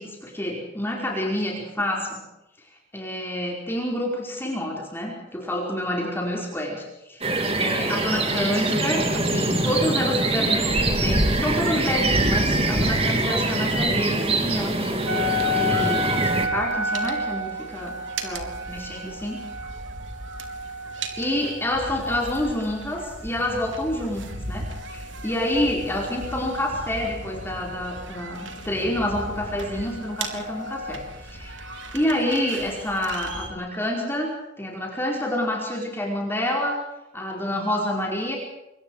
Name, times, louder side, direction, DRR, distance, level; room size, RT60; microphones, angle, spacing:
voice 1, 0.0-2.2 2.9-7.3 7.5-15.2 15.6-19.4 21.2-31.6 31.9-36.8 37.1-38.4, left 1 dB, 15° left, -1 dB, 4.9 m, -28 dB
sound 1, 7.2-16.5, right 2 dB, 35° right, 3.5 m, -23 dB
sound 2, 15.1-33.5, equal, 85° right, 3.8 m, -32 dB
27.0 x 24.5 x 4.9 m, 0.93 s
head